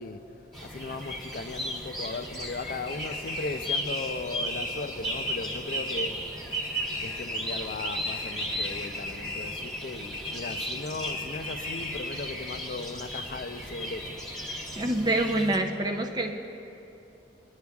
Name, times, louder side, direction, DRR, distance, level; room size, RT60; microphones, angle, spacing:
voice 1, 0.0-6.2 6.6-14.2, left 3 dB, 50° left, 0.5 m, -37 dB
sound 1, 0.5-15.6, equal, ahead, 1.3 m, -35 dB
sound 2, 2.9-6.2 6.5-7.4 7.7-9.7 10.0-12.1, left 3 dB, 30° left, 0.9 m, -38 dB
voice 2, 14.8-16.3, right 1 dB, 20° right, 0.5 m, -26 dB
21.0 x 9.6 x 2.3 m
head